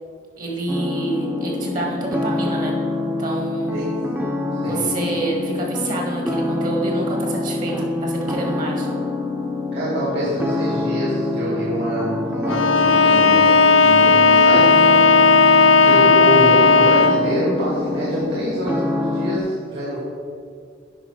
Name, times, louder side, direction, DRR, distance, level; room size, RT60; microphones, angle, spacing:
voice 1, 0.4-2.8 3.0-3.9 4.6-8.9, right 2 dB, 45° right, -1 dB, 1.6 m, -27 dB
sound 1, 0.7-19.4, left 2 dB, 10° right, 0.7 m, -26 dB
voice 2, 9.8-13.5 13.8-14.8 15.1-20.0, right 1 dB, 60° right, -7 dB, 2.2 m, -26 dB
Bowed string instrument, 12.5-17.3, left 4 dB, 70° left, 0.5 m, -14 dB
10.0 x 5.1 x 4.8 m, 2.3 s
head